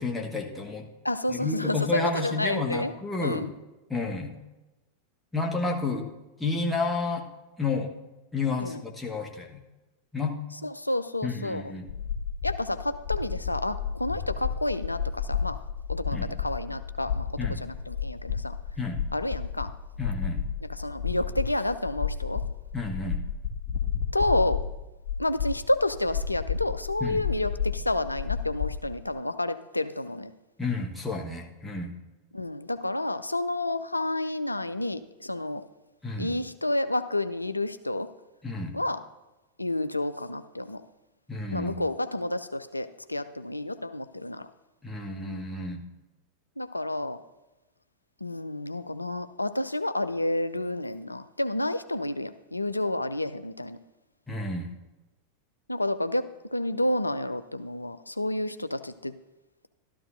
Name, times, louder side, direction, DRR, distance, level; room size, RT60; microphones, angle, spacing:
voice 1, 0.0-0.9 1.3-3.5 3.9-4.3 5.3-6.1 6.4-7.2 7.6-7.9 8.3-9.6 10.1-10.4 11.2-11.9 16.1-16.3 17.4-17.6 18.8-19.0 20.0-20.4 22.7-23.2 27.0-27.2 30.6-31.9 36.0-36.3 38.4-38.8 41.3-41.7 44.8-45.8 54.3-54.7, left 3 dB, 10° left, 0 dB, 1.3 m, -30 dB
voice 2, 1.0-2.9 3.2-3.5 8.6-8.8 10.6-11.6 12.4-15.6 15.9-17.3 17.6-18.6 19.1-19.7 20.6-22.4 24.1-24.6 25.2-30.3 32.3-35.7 36.2-38.1 38.7-39.0 39.6-40.8 41.5-44.5 46.6-47.2 48.2-53.8 55.7-59.1, left 1 dB, 85° left, 12 dB, 0.4 m, -30 dB
sound 1, 11.9-29.0, left 7 dB, 40° left, 1.9 m, -32 dB
12.5 x 12.5 x 2.6 m, 1.1 s
figure-of-eight pair, 90°, 0 cm